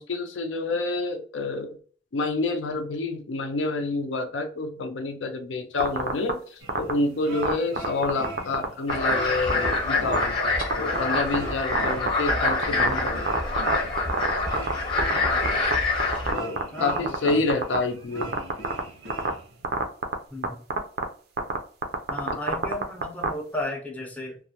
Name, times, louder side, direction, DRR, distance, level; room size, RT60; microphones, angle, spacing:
voice 1, 0.0-1.8 2.1-13.3 16.3-18.3, left 3 dB, 80° left, 5 dB, 0.5 m, -28 dB
sound 1, 5.8-6.3 6.7-6.9 7.4-8.6 8.9-9.1 9.5-9.7 10.1-10.2 10.6-11.4 11.7-14.7 15.0-15.7 16.0-16.6 16.9-17.8 18.2-18.8 19.1-19.3 19.6-20.1 20.4-20.5 20.7-21.0 21.4-23.3, right 5 dB, 55° right, 0.4 m, -24 dB
sound 2, 6.6-19.7, right 2 dB, 80° right, 0.8 m, -41 dB
sound 3, 8.9-16.3, left 3 dB, 25° left, 0.8 m, -26 dB
voice 2, 16.7-17.4 20.3-20.6 22.1-24.4, left 1 dB, 10° left, -1 dB, 0.5 m, -34 dB
2.3 x 2.1 x 2.8 m, 0.44 s
head